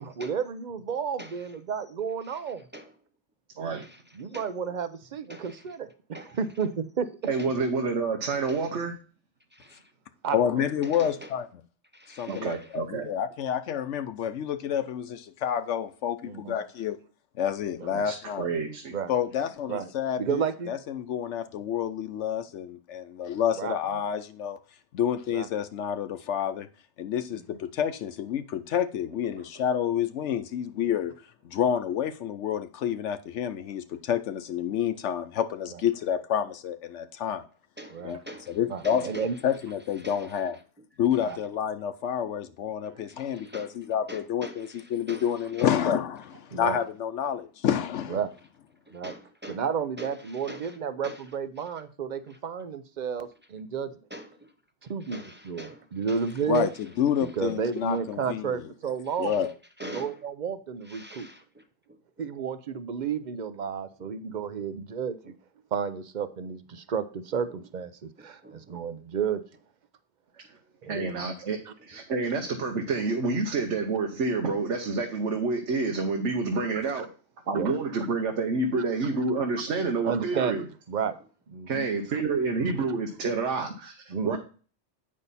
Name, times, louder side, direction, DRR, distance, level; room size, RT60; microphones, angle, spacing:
voice 1, 0.0-2.7 4.2-7.1 10.2-10.6 16.2-16.6 17.8-17.9 18.9-19.1 19.7-19.9 20.2-20.7 23.6-23.8 25.3-25.5 27.3-27.4 37.9-38.1 38.7-39.4 41.2-41.4 46.5-46.8 48.1-48.3 48.9-49.1 49.5-53.9 54.8-56.7 57.2-59.4 59.8-61.3 62.2-65.3 65.7-67.9 68.2-69.4 70.8-71.3 71.7-71.8 77.5-77.8 80.0-81.2 81.5-81.9 82.6-82.7 84.1-84.4, right 6 dB, 50° right, 0.7 m, -32 dB
voice 2, 1.2-1.6 2.2-2.9 3.8-4.5 5.3-5.8 6.1-6.4 7.4-7.6 8.4-8.7 9.5-9.9 10.3-10.4 10.8-11.4 11.9-12.8 26.6-26.7 37.8-38.6 38.8-39.4 39.9-40.9 41.1-41.4 42.2-42.3 42.9-43.8 44.1-45.7 48.9-49.6 50.0-51.3 51.6-51.7 52.3-52.4 54.1-54.6 54.8-57.5 57.9-58.0 58.6-60.2 60.8-62.0 64.1-64.2 64.6-64.7 65.2-65.3 67.5-67.6 68.2-68.8 71.9-72.0 73.1-73.2 75.8-76.3 83.1-83.3 83.7-83.8, equal, 10° right, 0.7 m, -46 dB
voice 3, 7.3-8.9 12.3-13.1 17.9-18.9 70.8-77.1 77.5-80.6 81.7-84.4, right 3 dB, 75° right, 1.2 m, -28 dB
voice 4, 10.3-11.4 12.1-17.0 17.4-18.5 19.1-24.6 24.9-26.7 27.0-31.1 31.4-37.4 38.0-38.2 38.5-39.1 39.4-40.6 41.0-48.2 56.5-56.7 57.0-58.7 59.2-59.5, left 9 dB, 80° left, 1.0 m, -29 dB
8.6 x 5.4 x 4.1 m
omnidirectional pair, 1.2 m